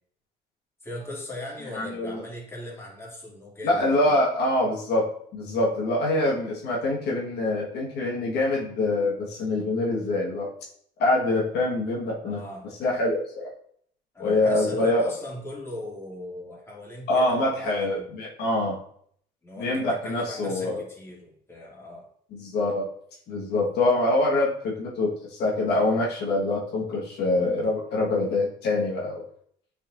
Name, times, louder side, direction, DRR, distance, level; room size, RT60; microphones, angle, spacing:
voice 1, 0.8-4.2 12.2-12.7 14.1-18.1 19.4-22.1, left 1 dB, 15° left, -5 dB, 2.4 m, -39 dB
voice 2, 1.7-2.2 3.6-5.1 5.3-10.5 11.0-12.4 12.8-13.5 14.2-15.0 17.1-18.8 19.6-20.8 22.3-22.8 23.3-29.2, left 2 dB, 75° left, -3 dB, 1.5 m, -25 dB
8.8 x 4.3 x 2.6 m, 0.64 s
cardioid pair, 110°, 17 cm